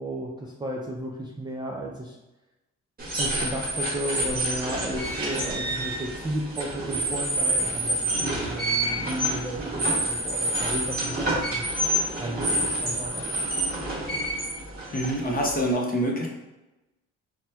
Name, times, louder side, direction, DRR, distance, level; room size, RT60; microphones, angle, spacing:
voice 1, 0.0-2.2 3.2-11.7 12.2-13.4, right 1 dB, 15° right, -3 dB, 0.4 m, -34 dB
sound 1, 3.0-15.7, right 1 dB, 30° right, 0.9 m, -28 dB
voice 2, 14.9-16.3, equal, 30° left, -1 dB, 0.8 m, -25 dB
4.0 x 2.2 x 2.2 m, 1.0 s
cardioid pair, 90°, 30 cm